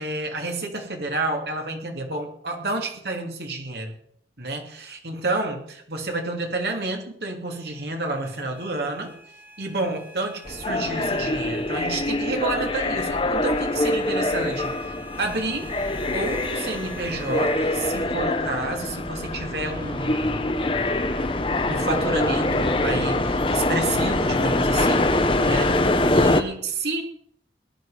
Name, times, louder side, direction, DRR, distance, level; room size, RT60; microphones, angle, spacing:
voice 1, 0.0-3.9 4.4-9.2 9.6-15.7 16.1-20.4 21.7-27.0, right 2 dB, 70° right, 2 dB, 3.1 m, -30 dB
sound 1, 7.5-18.3, right 1 dB, 10° right, 5.0 m, -45 dB
sound 2, 10.5-26.4, left 2 dB, 30° left, 1.1 m, -24 dB
19.0 x 12.0 x 5.1 m, 0.64 s
head